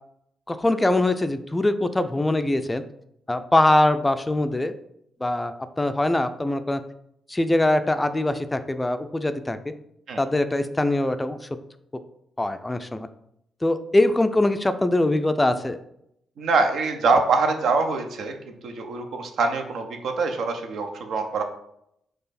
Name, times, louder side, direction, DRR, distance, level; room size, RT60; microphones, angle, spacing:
voice 1, 0.5-2.8 3.3-4.7 5.2-6.8 7.3-9.6 10.2-11.4 12.4-13.1 13.6-15.8, left 1 dB, 15° left, 10 dB, 0.4 m, -22 dB
voice 2, 16.4-21.4, right 4 dB, 60° right, 5 dB, 0.6 m, -24 dB
4.6 x 2.5 x 4.1 m, 0.76 s
figure-of-eight pair, 40°, 0 cm